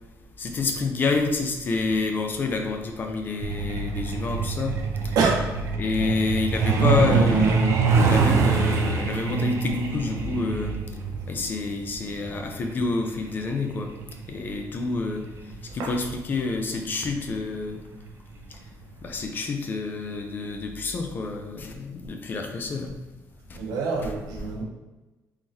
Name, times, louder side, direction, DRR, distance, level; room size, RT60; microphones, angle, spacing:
voice 1, 0.4-5.2 5.8-10.8 11.3-13.9 14.3-15.3 15.7-17.8 18.5-18.6 19.0-22.9 23.5-23.6, left 3 dB, 30° left, 4 dB, 0.4 m, -28 dB
Truck, 3.4-15.7 16.9-17.1 17.5-17.7 18.1-18.3 18.7-18.8 19.2-19.3, right 4 dB, 45° right, 0.5 m, -25 dB
voice 2, 5.1-5.5 6.0-6.1 11.1-11.2 15.8-16.0 23.5-24.6, right 4 dB, 80° right, -1 dB, 0.9 m, -26 dB
3.7 x 3.1 x 2.7 m, 1.1 s
cardioid pair, 170°, 6 cm